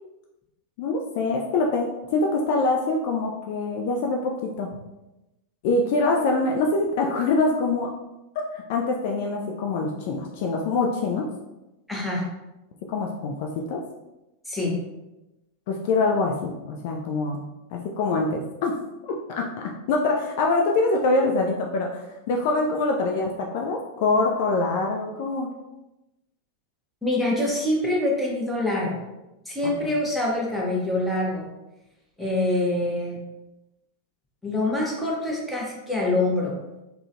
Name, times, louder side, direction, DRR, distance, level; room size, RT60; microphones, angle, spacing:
voice 1, 0.8-4.7 5.6-7.9 8.5-11.3 12.9-13.8 15.7-17.4 17.7-18.8 19.0-25.5 29.6-29.9, left 3 dB, 50° left, 1 dB, 0.3 m, -24 dB
voice 2, 11.9-12.2 14.4-14.7 27.0-29.0 29.5-31.5 32.2-33.2 34.4-36.5, left 1 dB, 5° left, -4 dB, 0.9 m, -25 dB
3.6 x 2.1 x 2.6 m, 0.99 s
figure-of-eight pair, 90°, 0 cm